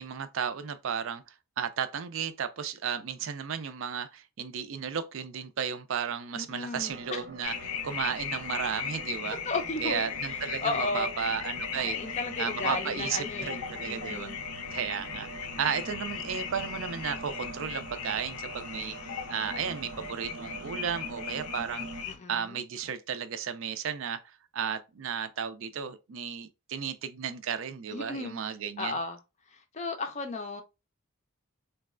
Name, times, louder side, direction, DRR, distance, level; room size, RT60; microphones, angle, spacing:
voice 1, 0.0-7.5 7.8-9.4 9.8-12.0 12.4-14.3 14.7-15.3 15.6-19.0 19.3-21.9 22.3-29.0, right 7 dB, 60° right, 0.4 m, -34 dB
voice 2, 6.3-7.2 9.3-10.1 10.6-11.1 11.8-14.4 22.1-22.6 27.9-28.4 28.8-29.2 29.5-30.6, left 3 dB, 30° left, 0.4 m, -34 dB
sound 1, 6.7-22.1, right 3 dB, 80° right, 0.8 m, -44 dB
sound 2, 7.4-22.2, left 7 dB, 90° left, 0.5 m, -38 dB
3.9 x 2.2 x 2.3 m
head